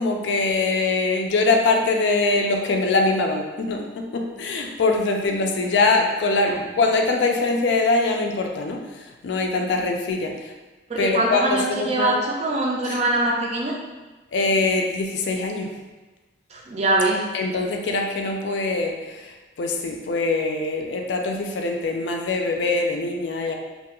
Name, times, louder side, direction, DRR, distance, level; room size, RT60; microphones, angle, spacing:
voice 1, 0.0-8.8 9.2-10.3 11.0-12.2 12.9-13.0 14.3-15.7 17.3-23.5, left 3 dB, 70° left, 2 dB, 0.4 m, -23 dB
voice 2, 10.9-13.8 16.5-17.3, right 2 dB, 35° right, -1 dB, 0.4 m, -23 dB
2.5 x 2.3 x 2.9 m, 1.2 s
head